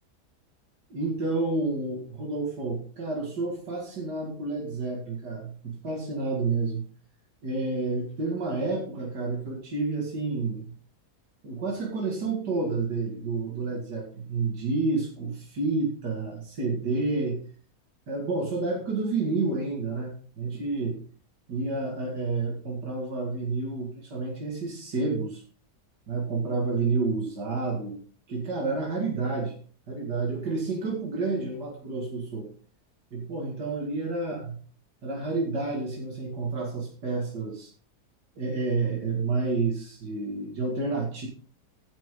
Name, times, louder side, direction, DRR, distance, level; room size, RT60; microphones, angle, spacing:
voice 1, 0.9-6.8 7.4-10.7 11.4-17.4 18.1-21.0 21.5-25.4 26.1-28.0 28.3-29.5 29.9-32.5 33.1-34.6 35.0-37.7 38.4-41.3, right 3 dB, 90° right, -1 dB, 2.7 m, -29 dB
15.0 x 7.2 x 3.8 m, 0.44 s
omnidirectional pair, 1.7 m